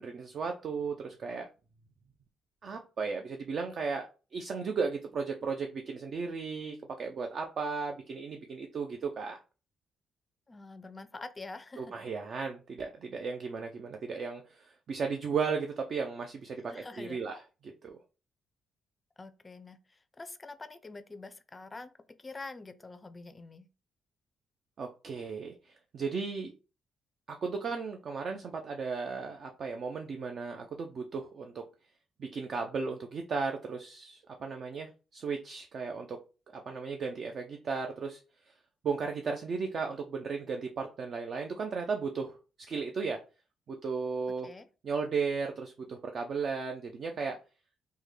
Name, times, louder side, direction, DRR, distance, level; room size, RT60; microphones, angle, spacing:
voice 1, 0.0-1.5 2.6-9.4 11.8-18.0 24.8-26.5 27.3-31.6 32.2-36.2 36.7-38.2 38.8-42.4 42.7-43.2 43.7-44.5 44.8-47.4, right 5 dB, 55° right, 0.4 m, -35 dB
voice 2, 10.5-11.9 16.7-17.2 19.2-21.9 22.2-23.7 44.4-44.7, left 3 dB, 25° left, 0.4 m, -46 dB
3.5 x 2.1 x 3.1 m
cardioid pair, 90°, 0 cm